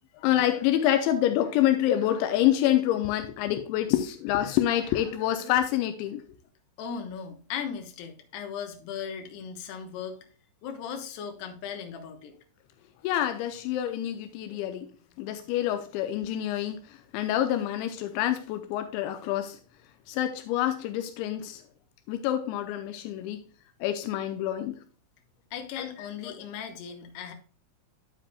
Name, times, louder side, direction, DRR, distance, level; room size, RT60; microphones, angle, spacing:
voice 1, 0.2-6.2 13.0-14.9 15.2-16.8 17.1-19.6 20.1-21.6 22.1-23.4 23.8-24.8 25.8-26.3, left 12 dB, 90° left, 2.6 m, -27 dB
voice 2, 6.8-10.2 10.6-12.3 25.5-27.3, left 7 dB, 70° left, 2.7 m, -37 dB
9.9 x 7.5 x 2.2 m
omnidirectional pair, 5.8 m